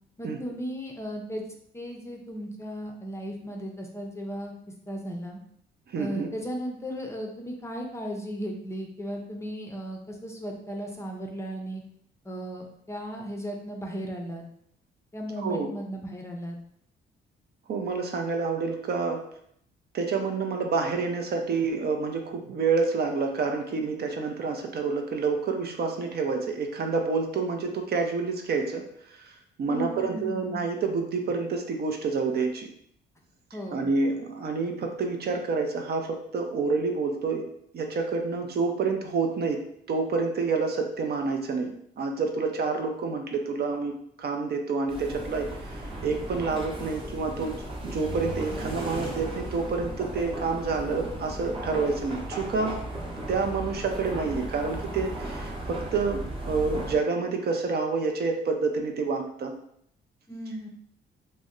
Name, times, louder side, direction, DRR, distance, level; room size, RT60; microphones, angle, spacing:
voice 1, 0.2-1.4 1.7-4.5 4.9-5.4 6.0-11.8 12.2-14.4 15.1-16.6 29.6-30.6 33.5-33.9 60.3-60.7, equal, 15° left, 1 dB, 0.5 m, -36 dB
voice 2, 5.9-6.3 15.4-15.7 17.7-19.2 19.9-32.7 33.7-37.4 37.7-39.6 39.9-41.7 42.0-52.8 53.3-59.5, right 4 dB, 55° right, 3 dB, 0.5 m, -28 dB
sound 1, 44.9-57.0, right 1 dB, 25° right, 0.8 m, -36 dB
2.6 x 2.1 x 3.6 m, 0.68 s
cardioid pair, 90°, 20 cm